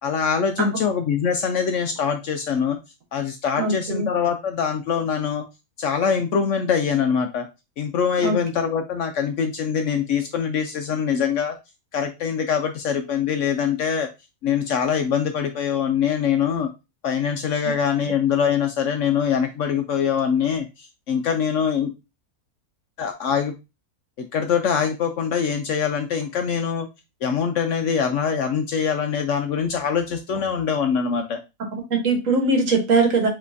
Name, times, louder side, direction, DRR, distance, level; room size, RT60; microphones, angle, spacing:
voice 1, 0.0-2.8 3.1-5.4 5.8-7.5 7.8-11.6 11.9-14.1 14.4-16.7 17.0-21.9 23.0-23.5 24.3-26.9 27.2-31.4, left 7 dB, 65° left, 6 dB, 0.8 m, -23 dB
voice 2, 3.6-4.1 8.2-8.3 31.9-33.3, right 3 dB, 60° right, 3 dB, 1.4 m, -20 dB
5.2 x 3.2 x 2.5 m, 0.25 s
omnidirectional pair, 1.6 m